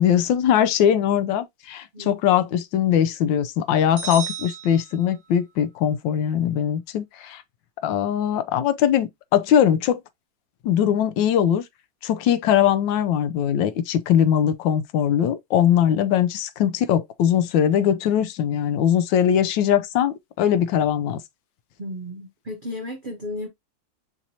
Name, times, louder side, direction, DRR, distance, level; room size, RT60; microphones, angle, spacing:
voice 1, 0.0-7.4 7.8-10.0 10.6-11.6 12.0-21.2, left 9 dB, 80° left, 1.3 m, -21 dB
sound 1, 4.0-5.5, right 5 dB, 30° right, 0.9 m, -34 dB
voice 2, 21.8-23.5, left 1 dB, 75° right, 0.4 m, -33 dB
6.0 x 2.7 x 2.7 m
omnidirectional pair, 2.0 m